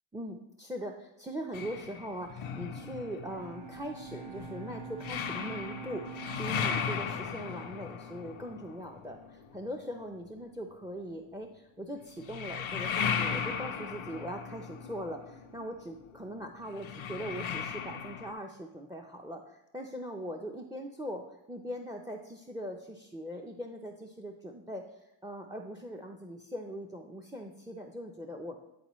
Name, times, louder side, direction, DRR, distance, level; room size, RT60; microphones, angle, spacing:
voice 1, 0.1-28.6, equal, 10° right, 4 dB, 0.5 m, -41 dB
sound 1, 1.5-10.0 12.2-18.3, left 7 dB, 85° left, 0.7 m, -37 dB
Bowed string instrument, 3.2-8.8, right 7 dB, 55° right, 0.9 m, -47 dB
10.0 x 4.0 x 3.0 m, 0.88 s
cardioid pair, 70°, 47 cm